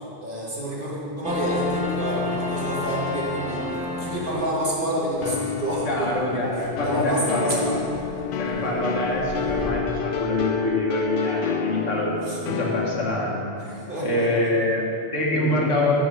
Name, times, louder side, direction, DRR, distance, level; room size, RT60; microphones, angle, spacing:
voice 1, 0.2-3.7 4.0-6.1 6.5-7.8 8.1-8.7 12.2-12.4 13.7-14.5, right 1 dB, 45° right, -5 dB, 1.7 m, -28 dB
sound 1, 1.2-9.7, left 3 dB, 10° right, 0.4 m, -33 dB
sound 2, 5.2-13.5, left 6 dB, 60° left, 0.6 m, -29 dB
voice 2, 5.8-7.7 8.4-12.2 12.5-16.0, left 1 dB, 85° left, -3 dB, 1.7 m, -25 dB
7.1 x 5.5 x 6.7 m, 2.7 s
omnidirectional pair, 1.2 m